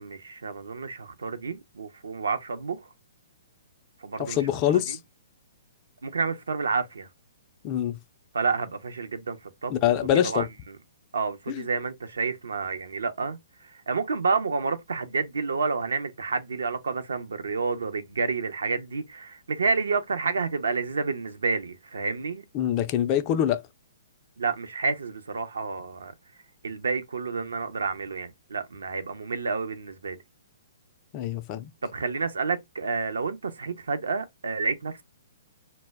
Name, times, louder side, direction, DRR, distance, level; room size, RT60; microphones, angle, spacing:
voice 1, 0.0-2.9 4.0-4.4 4.9-5.0 6.0-7.1 8.3-9.7 10.1-10.8 11.1-22.4 24.4-26.1 26.6-30.2 31.8-35.0, right 4 dB, 70° right, 0.5 m, -29 dB
voice 2, 4.2-5.0 7.6-8.0 9.7-10.5 11.5-11.6 22.5-23.6 31.1-31.7, left 10 dB, 30° left, 0.3 m, -24 dB
2.1 x 2.0 x 3.4 m
figure-of-eight pair, 120°, 0 cm